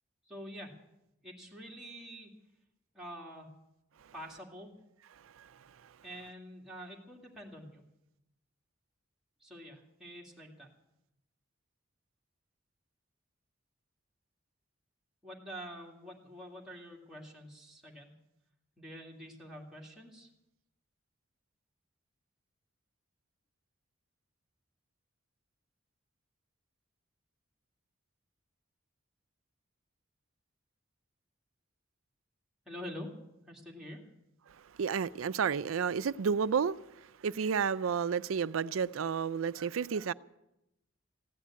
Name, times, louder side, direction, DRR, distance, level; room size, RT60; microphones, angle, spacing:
voice 1, 0.3-0.7 1.2-2.3 2.9-3.5 4.1-4.7 6.0-7.8 9.4-10.7 15.2-18.1 18.8-20.3 32.7-33.1 33.5-34.0, equal, 5° right, 2.3 m, -46 dB
voice 2, 34.8-36.8 37.2-40.1, right 6 dB, 90° right, 0.5 m, -31 dB
15.5 x 10.0 x 8.5 m
head